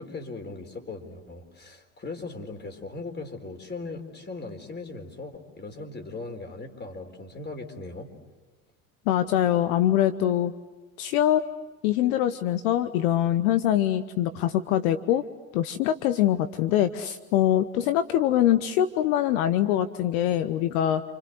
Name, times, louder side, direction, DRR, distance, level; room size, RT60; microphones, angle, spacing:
voice 1, 0.0-8.1, left 3 dB, 25° left, 5 dB, 4.2 m, -38 dB
voice 2, 9.1-10.5 11.0-11.4 11.8-15.2 15.5-21.0, left 11 dB, 70° left, 11 dB, 1.1 m, -23 dB
29.0 x 25.5 x 7.9 m, 1.3 s
hypercardioid pair, 85°, 44 cm